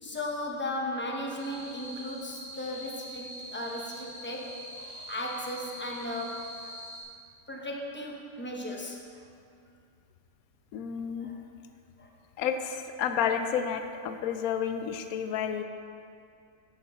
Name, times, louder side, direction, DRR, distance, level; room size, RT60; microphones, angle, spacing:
voice 1, 0.0-6.7 7.5-9.2 11.2-11.4 12.0-12.1 14.1-14.2 15.3-15.6, left 1 dB, 10° left, -1 dB, 0.6 m, -36 dB
sound 1, 1.4-7.0, equal, 50° right, 2.8 m, -44 dB
voice 2, 10.7-11.3 12.4-15.6, left 8 dB, 85° left, 7 dB, 1.0 m, -30 dB
8.7 x 8.3 x 3.5 m, 2.4 s
omnidirectional pair, 1.5 m